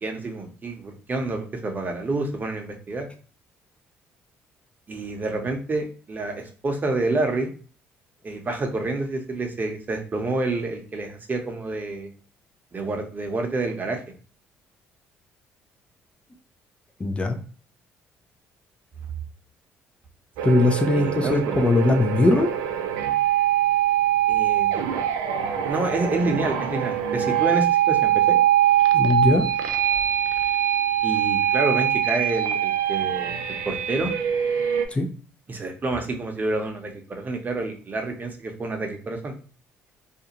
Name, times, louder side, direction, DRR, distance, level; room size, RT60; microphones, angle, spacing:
voice 1, 0.0-3.1 4.9-7.5 8.2-12.1 12.7-14.0 20.9-21.6 24.3-24.9 25.6-28.4 31.0-33.4 33.7-34.1 35.5-39.3, right 2 dB, 35° right, 4 dB, 0.8 m, -28 dB
voice 2, 17.0-17.4 20.4-22.5 28.9-29.5 34.9-35.1, left 2 dB, 20° left, 5 dB, 0.5 m, -20 dB
sound 1, 20.4-34.9, right 10 dB, 90° right, 0.4 m, -23 dB
2.5 x 2.2 x 2.8 m, 0.40 s
supercardioid pair, 75°, 5 cm